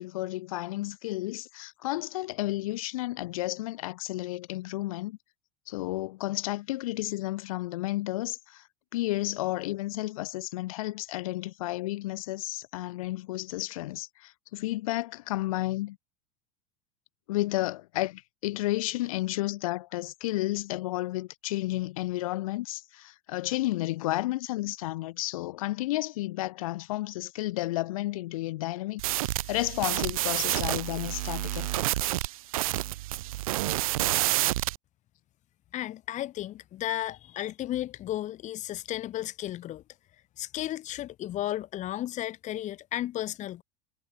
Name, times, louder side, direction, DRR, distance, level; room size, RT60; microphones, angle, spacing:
voice 1, 0.0-5.2 5.7-8.7 8.9-16.0 17.3-31.8, left 17 dB, 60° left, 1.2 m, -32 dB
sound 1, 29.0-34.8, right 16 dB, 60° right, 0.4 m, -29 dB
voice 2, 35.7-39.8 40.4-43.6, left 13 dB, 35° left, 2.3 m, -34 dB
figure-of-eight pair, 80°, 20 cm